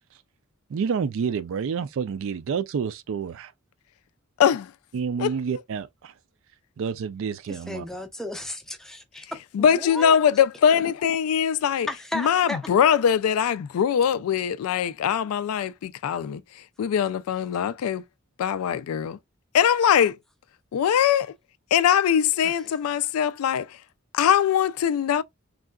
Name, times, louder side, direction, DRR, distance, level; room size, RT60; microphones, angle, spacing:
voice 1, 0.7-3.5 4.9-6.1 6.8-7.9, right 6 dB, 65° right, 0.4 m, -29 dB
voice 2, 4.4-4.7 5.2-5.3 9.5-11.9 12.1-16.4 16.8-18.0 18.4-19.2 19.5-20.2 20.7-21.3 21.7-23.8 24.1-25.2, left 8 dB, 85° left, 0.3 m, -22 dB
voice 3, 7.4-9.2 9.6-10.2 11.9-12.6 22.4-22.7, left 1 dB, ahead, 0.5 m, -34 dB
3.7 x 2.3 x 2.2 m
head